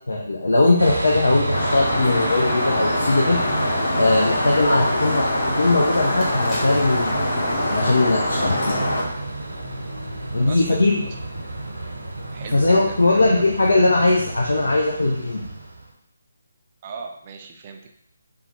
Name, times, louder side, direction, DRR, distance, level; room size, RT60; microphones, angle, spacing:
voice 1, 0.1-3.4 4.0-8.9 10.3-11.0 12.5-15.5, left 2 dB, 75° left, -2 dB, 0.5 m, -20 dB
sound 1, 0.8-15.9, right 2 dB, 80° right, 0.9 m, -31 dB
sound 2, 1.5-9.0, left 1 dB, 50° left, 1.1 m, -24 dB
sound 3, 6.2-9.2 9.6-9.7, left 1 dB, 15° left, 0.9 m, -41 dB
voice 2, 10.4-10.9 12.3-13.4 16.8-17.9, right 5 dB, 30° right, 3 dB, 0.4 m, -38 dB
3.4 x 2.2 x 3.0 m, 0.71 s
figure-of-eight pair, 150°, 0 cm